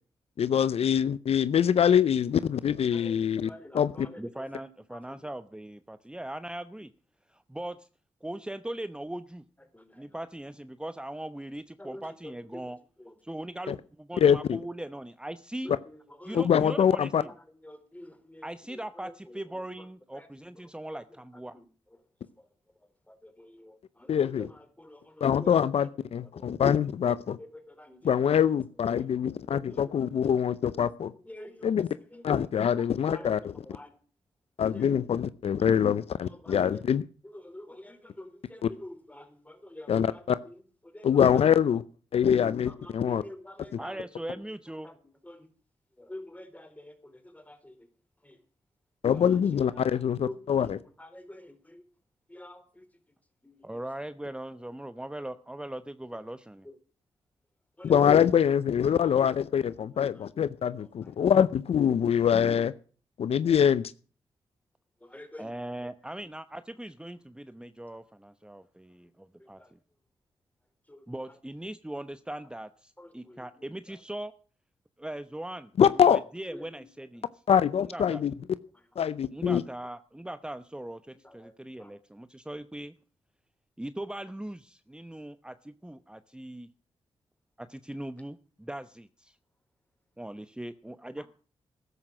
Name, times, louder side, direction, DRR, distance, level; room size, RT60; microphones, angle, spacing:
voice 1, 0.4-4.1 13.7-13.8 14.2-14.6 16.3-17.2 24.1-24.5 25.2-27.4 28.0-31.1 31.6-31.9 32.2-33.5 34.6-37.0 38.6-38.7 39.9-40.4 41.0-41.8 42.1-43.2 49.0-50.8 57.8-62.7 63.2-63.9 75.8-76.2 77.5-78.3 79.0-79.6, left 8 dB, 70° left, 16 dB, 0.6 m, -24 dB
voice 2, 2.9-5.2 9.7-10.2 11.8-12.6 13.0-13.1 15.6-16.7 17.2-17.3 17.6-19.6 20.1-20.3 20.9-21.0 21.5-21.6 23.1-25.6 26.2-26.6 27.4-28.3 29.5-29.9 31.0-31.7 32.1-32.3 32.6-32.8 33.1-33.9 34.7-34.9 35.6-35.7 36.2-36.8 37.2-40.6 40.8-41.4 42.3-44.4 44.8-45.0 45.2-45.5 46.0-47.9 48.2-48.4 49.0-51.8 52.3-52.9 53.4-53.8 56.7-56.8 57.8-57.9 60.1-61.1 65.0-65.6 69.4-69.7 70.9-71.3 73.0-73.4 76.5-76.9 81.2-81.9, left 1 dB, 15° left, 9 dB, 3.9 m, -48 dB
voice 3, 4.2-6.9 7.3-7.9 8.2-9.4 10.0-12.8 13.2-15.7 16.2-17.3 18.4-21.6 43.8-44.9 53.6-56.7 65.4-69.8 71.1-74.3 75.0-75.7 76.1-77.2 77.9-78.2 79.3-82.9 83.8-86.7 87.6-89.4 90.2-91.3, right 1 dB, 10° right, 12 dB, 0.9 m, -40 dB
13.5 x 11.0 x 6.3 m, 0.41 s
supercardioid pair, 45°, 11 cm